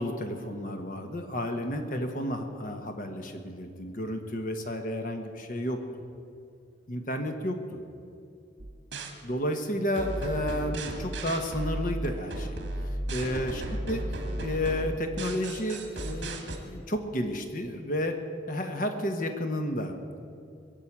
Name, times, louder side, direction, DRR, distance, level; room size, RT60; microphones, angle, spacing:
voice 1, 0.0-5.8 6.9-7.8 9.2-12.5 12.8-13.6 13.9-18.2 18.5-20.2, left 1 dB, 45° left, 5 dB, 1.2 m, -32 dB
sound 1, 8.6-9.1 10.0-16.6, right 1 dB, 75° right, 2.2 m, -34 dB
21.5 x 7.6 x 8.7 m, 2.5 s
head